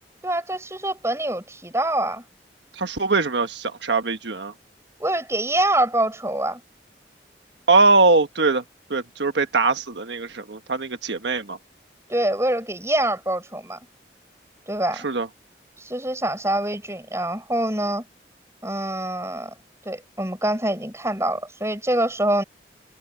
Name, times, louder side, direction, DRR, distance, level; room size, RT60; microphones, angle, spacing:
voice 1, 0.2-2.2 5.0-6.6 12.1-13.8 14.7-15.1 15.8-18.0 18.6-19.5 19.8-22.4, right 1 dB, 15° right, 5.0 m, -25 dB
voice 2, 2.7-4.5 7.7-8.6 8.9-11.6 14.9-15.3, right 3 dB, 85° right, 1.3 m, -21 dB
head